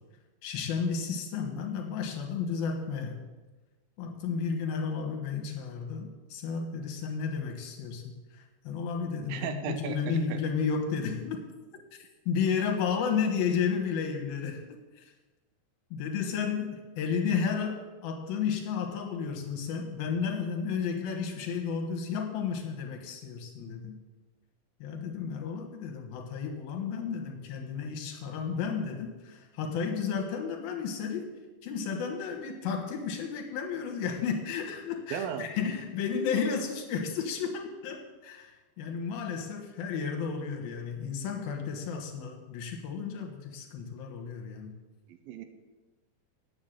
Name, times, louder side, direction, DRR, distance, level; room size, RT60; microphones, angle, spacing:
voice 1, 0.4-3.2 4.0-8.0 8.3-11.4 11.9-14.6 15.0-15.1 15.9-24.0 24.8-31.3 31.6-44.8, left 6 dB, 75° left, 3 dB, 3.1 m, -32 dB
voice 2, 9.3-10.4 35.1-35.5 45.1-45.4, right 8 dB, 75° right, 8 dB, 2.5 m, -36 dB
8.6 x 7.3 x 8.9 m, 1.2 s
omnidirectional pair, 4.4 m